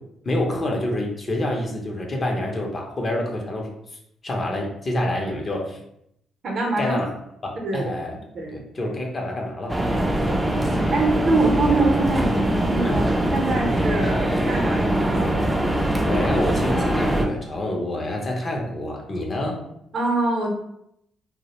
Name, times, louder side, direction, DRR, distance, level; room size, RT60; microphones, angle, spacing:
voice 1, 0.2-3.7 4.2-5.8 6.8-7.1 7.4-8.2 8.5-9.7 12.8-13.0 16.0-19.6, left 1 dB, 35° left, 0 dB, 0.6 m, -27 dB
voice 2, 6.4-7.0 7.6-7.9 8.3-8.6 9.9-10.4 10.9-13.0 13.3-15.5 19.9-20.5, right 2 dB, 55° right, 0 dB, 0.6 m, -24 dB
sound 1, 9.7-17.3, right 1 dB, 10° right, 0.4 m, -22 dB
2.3 x 2.0 x 2.9 m, 0.76 s
cardioid pair, 90°, 0 cm